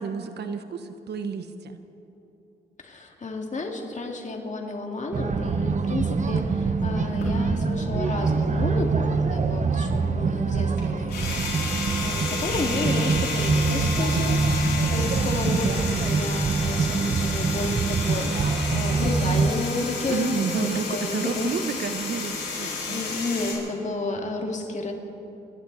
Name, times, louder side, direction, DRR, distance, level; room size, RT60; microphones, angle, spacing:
voice 1, 0.0-1.8 5.8-6.2 20.1-23.0, right 6 dB, 70° right, 9 dB, 1.1 m, -30 dB
voice 2, 2.8-21.5 22.5-24.9, left 2 dB, 40° left, 2 dB, 2.4 m, -32 dB
sound 1, 5.1-19.5, right 4 dB, 45° right, 0.9 m, -25 dB
sound 2, 7.0-8.8 9.1-23.5, left 4 dB, 70° left, 4.9 m, -32 dB
28.0 x 12.0 x 4.1 m, 3.0 s
cardioid pair, 70°, 18 cm